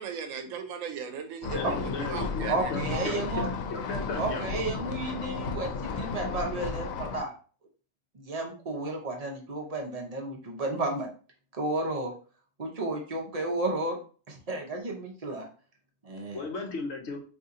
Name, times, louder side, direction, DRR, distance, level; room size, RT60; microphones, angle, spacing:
voice 1, 0.0-3.0, right 6 dB, 75° right, 6 dB, 1.0 m, -38 dB
sound 1, 1.4-7.2, left 4 dB, 90° left, 1.0 m, -34 dB
voice 2, 1.5-4.5 16.3-17.2, left 3 dB, 60° left, 3 dB, 1.0 m, -36 dB
voice 3, 2.5-3.5 4.2-7.3 8.1-11.1 11.5-12.1 12.6-14.0 14.3-15.4 16.0-16.5, right 2 dB, 35° right, 2 dB, 0.6 m, -32 dB
2.7 x 2.7 x 3.6 m, 0.39 s
omnidirectional pair, 1.4 m